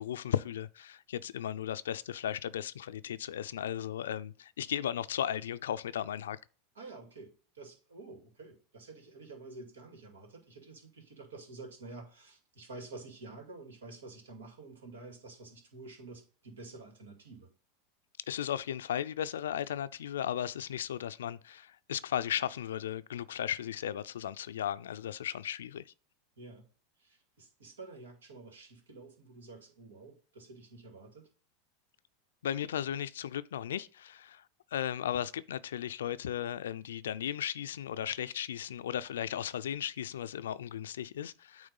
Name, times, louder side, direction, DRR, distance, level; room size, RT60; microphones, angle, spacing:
voice 1, 0.0-6.4 18.3-25.9 32.4-34.4 34.7-41.7, left 10 dB, 80° left, 0.4 m, -36 dB
voice 2, 6.7-17.5 26.4-26.7 27.0-31.3, right 3 dB, 90° right, 2.2 m, -49 dB
8.8 x 3.1 x 5.5 m
hypercardioid pair, 100°, 0 cm